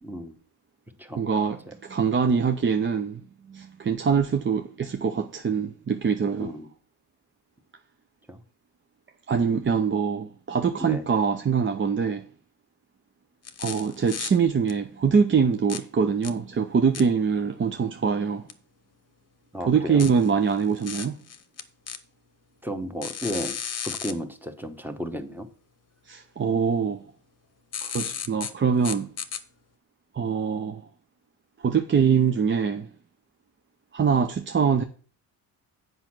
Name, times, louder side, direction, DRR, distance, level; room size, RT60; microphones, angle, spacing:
voice 1, 0.0-0.4 1.0-1.2 6.4-6.7 8.3-8.4 10.8-11.0 19.5-20.1 22.6-23.6 23.8-25.5, equal, 5° right, 1.1 m, -33 dB
voice 2, 1.2-3.2 3.5-6.5 9.3-12.2 13.6-18.4 19.6-21.2 26.1-27.0 27.8-29.1 30.1-30.8 31.6-32.9 33.9-34.8, right 6 dB, 30° right, 0.6 m, -24 dB
sound 1, 13.5-14.3 14.7-14.8 15.7-15.8 16.2-16.3 16.9-17.0 18.5-18.6 20.0-22.0 23.0-24.1 27.7-28.5 28.8-29.4, left 7 dB, 40° left, 0.9 m, -34 dB
8.0 x 5.3 x 6.0 m
cardioid pair, 120°, 39 cm